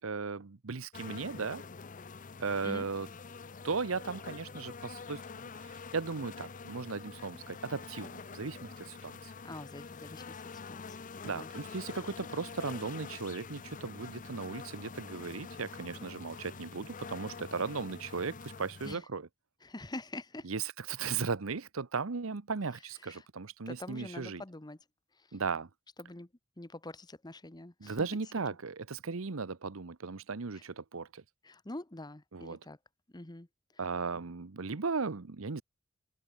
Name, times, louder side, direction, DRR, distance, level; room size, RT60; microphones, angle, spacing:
voice 1, 0.0-1.6 2.4-3.1 3.6-9.3 11.2-19.3 20.4-24.4 25.3-25.7 27.8-31.2 32.3-32.6 33.8-35.6, right 4 dB, 80° right, 0.9 m, -37 dB
sound 1, 0.9-19.0, left 5 dB, 40° left, 0.7 m, -46 dB
voice 2, 9.4-11.0 11.2-11.5 18.8-19.0 19.6-20.5 23.0-23.2 23.7-24.8 25.2-25.4 26.0-26.3 26.6-28.1 28.4-28.5 30.5-30.6 31.4-32.8 33.1-33.5, left 2 dB, 20° left, 1.1 m, -45 dB
head